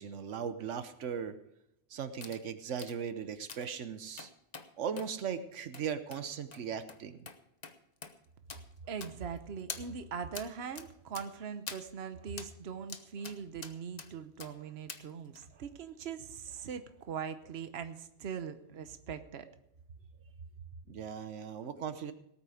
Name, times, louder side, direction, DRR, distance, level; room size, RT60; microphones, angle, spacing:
voice 1, 0.0-1.4 1.9-4.3 4.8-7.3 20.9-22.1, right 7 dB, 85° right, 10 dB, 1.2 m, -38 dB
sound 1, 2.2-2.4 2.8-3.0 3.5-3.7 4.2-4.7 5.0-5.1 5.7-5.8 6.1-6.2 6.5-6.6 6.9-7.0 7.3-7.4 7.6-7.7 8.0-8.1 8.5-8.6 9.0-9.4 9.7-9.8 10.3-10.5 10.7-10.9 11.1-11.3 11.7-11.8 12.4-12.5 12.9-13.4 13.6-14.1 14.4-14.5 14.9-15.0 15.3-15.5, left 5 dB, 40° left, 1.0 m, -44 dB
voice 2, 8.8-19.5, right 6 dB, 60° right, 9 dB, 1.2 m, -41 dB
18.5 x 8.7 x 4.9 m, 0.79 s
omnidirectional pair, 1.2 m